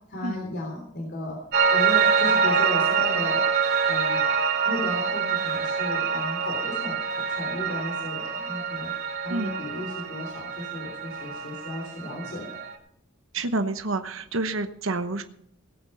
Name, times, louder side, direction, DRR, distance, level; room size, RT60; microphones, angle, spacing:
voice 1, 0.1-1.4 1.7-3.4 3.9-4.2 4.6-8.9 9.2-12.6, left 1 dB, 55° left, 0 dB, 3.2 m, -34 dB
Piano, 1.5-12.7, right 6 dB, 55° right, 2.7 m, -25 dB
voice 2, 13.3-15.2, right 2 dB, 75° right, 8 dB, 1.0 m, -28 dB
18.0 x 8.7 x 5.6 m, 0.72 s
head